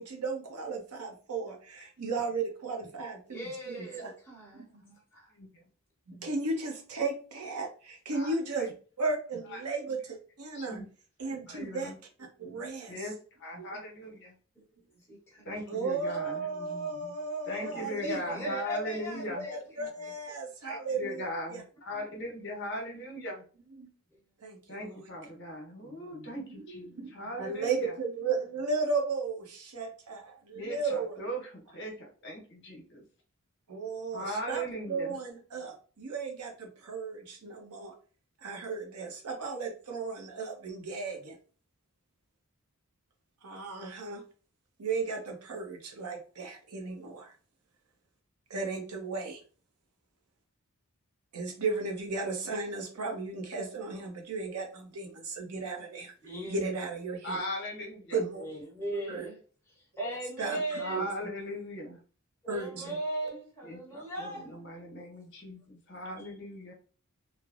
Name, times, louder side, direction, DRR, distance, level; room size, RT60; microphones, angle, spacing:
voice 1, 0.0-4.2 4.5-5.0 6.1-10.8 11.2-11.9 12.4-12.9 13.5-13.7 15.7-18.8 19.4-21.2 21.5-21.6 23.8-23.9 24.4-25.0 25.8-26.3 26.5-27.1 27.4-31.2 33.7-34.6 34.9-37.9 38.4-41.4 43.4-44.2 44.8-47.3 48.5-49.4 51.3-56.1 56.5-57.4 58.1-58.4 58.9-59.3 60.4-61.3 62.5-63.0 63.2-63.4, right 4 dB, 90° right, 0.7 m, -35 dB
voice 2, 3.3-4.6 5.1-5.3 9.9-10.0 12.6-12.7 14.6-14.7 15.1-15.4 17.6-19.6 56.2-56.6 58.4-59.4 60.0-61.0 62.4-64.4, right 1 dB, 10° left, 1.0 m, -38 dB
voice 3, 5.3-5.6 8.1-8.7 9.5-9.8 10.5-10.9 11.5-12.0 12.9-13.1 13.4-14.3 15.4-16.5 17.5-19.5 20.6-23.4 24.7-27.9 30.5-33.0 34.1-35.2 57.2-58.2 60.7-62.0 63.6-66.7, equal, 55° left, 0.9 m, -39 dB
3.1 x 2.0 x 2.4 m
head